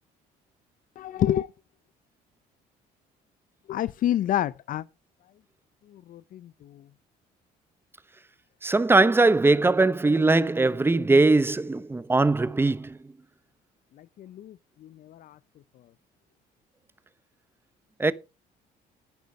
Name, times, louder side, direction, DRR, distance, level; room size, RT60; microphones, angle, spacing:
voice 1, 1.0-1.5 3.7-4.8 5.9-6.8 14.0-15.4, left 12 dB, 55° left, 0.5 m, -29 dB
voice 2, 8.6-13.0 18.0-18.1, right 3 dB, 15° right, 0.9 m, -21 dB
10.5 x 10.5 x 4.7 m
cardioid pair, 110°, 17 cm